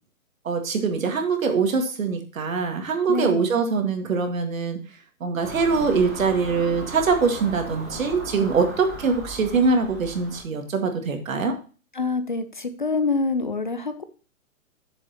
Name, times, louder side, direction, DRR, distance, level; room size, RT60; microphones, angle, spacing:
voice 1, 0.4-4.8 5.2-11.6, right 4 dB, 70° right, 5 dB, 2.0 m, -23 dB
voice 2, 3.1-3.5 11.9-14.0, left 3 dB, 35° left, 10 dB, 0.5 m, -26 dB
Car passing by / Engine, 5.4-10.4, right 2 dB, 10° right, 0.7 m, -37 dB
10.0 x 7.0 x 2.9 m, 0.36 s
hypercardioid pair, 175°, 41 cm